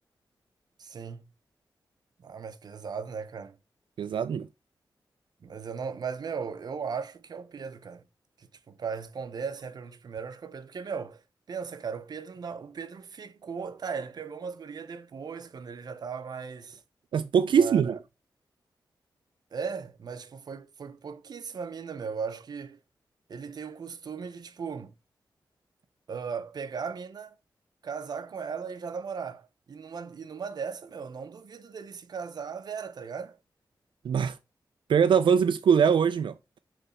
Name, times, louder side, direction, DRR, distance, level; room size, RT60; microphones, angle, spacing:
voice 1, 0.8-1.3 2.2-3.6 5.4-8.0 8.4-11.2 11.5-16.8 17.6-18.0 19.5-22.8 23.3-24.9 26.1-27.3 27.8-33.4, right 6 dB, 55° right, 0.7 m, -37 dB
voice 2, 4.0-4.5 17.1-18.0 34.0-34.4 34.9-36.3, right 7 dB, 90° right, 0.4 m, -22 dB
6.8 x 3.3 x 5.5 m
wide cardioid pair, 180°, 8 cm